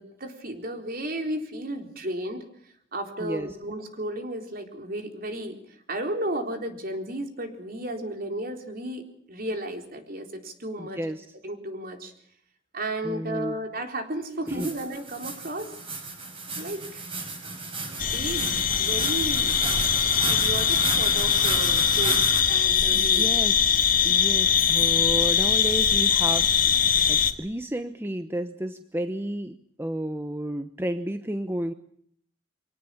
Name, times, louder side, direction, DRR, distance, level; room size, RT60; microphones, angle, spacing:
voice 1, 0.0-11.0 11.4-12.1 12.7-15.7 16.6-17.1 17.9-23.3, right 1 dB, 50° right, 5 dB, 4.0 m, -34 dB
voice 2, 10.8-11.3 13.0-13.6 14.5-14.7 22.9-26.5 27.1-31.7, right 1 dB, 10° right, 9 dB, 0.9 m, -32 dB
sound 1, 14.5-22.4, right 3 dB, 30° right, 6.4 m, -33 dB
sound 2, 18.0-27.3, left 8 dB, 45° left, 1.8 m, -22 dB
24.5 x 18.0 x 8.6 m, 0.64 s
head